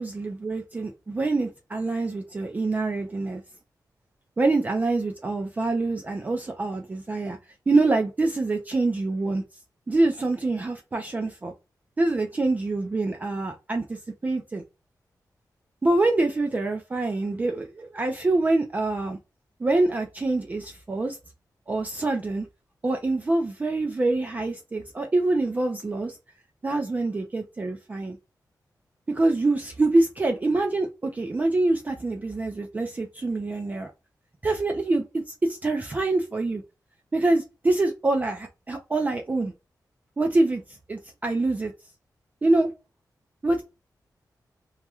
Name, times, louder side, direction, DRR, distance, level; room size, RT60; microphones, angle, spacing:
voice 1, 0.0-3.4 4.4-7.4 7.7-9.4 9.9-11.5 12.0-14.6 15.8-19.2 19.6-21.2 21.7-22.5 22.8-26.2 26.6-28.2 29.1-33.9 34.4-36.6 37.1-39.5 40.2-40.6 40.9-41.7 42.4-42.7 43.4-43.6, right 2 dB, 25° right, 0.4 m, -25 dB
2.3 x 2.1 x 2.8 m
wide cardioid pair, 160°, 7 cm